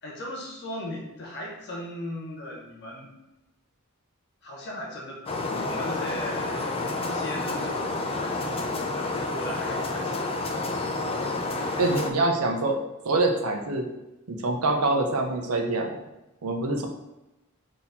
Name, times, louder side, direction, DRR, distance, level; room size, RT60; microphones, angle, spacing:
voice 1, 0.0-3.1 4.4-10.7, left 1 dB, 50° left, -2 dB, 1.2 m, -38 dB
sound 1, 5.3-12.1, left 2 dB, 25° left, 0.4 m, -29 dB
voice 2, 11.8-12.8 13.0-13.9 14.3-16.0 16.4-16.9, right 2 dB, 75° right, 3 dB, 0.7 m, -25 dB
4.1 x 2.8 x 4.0 m, 0.98 s
head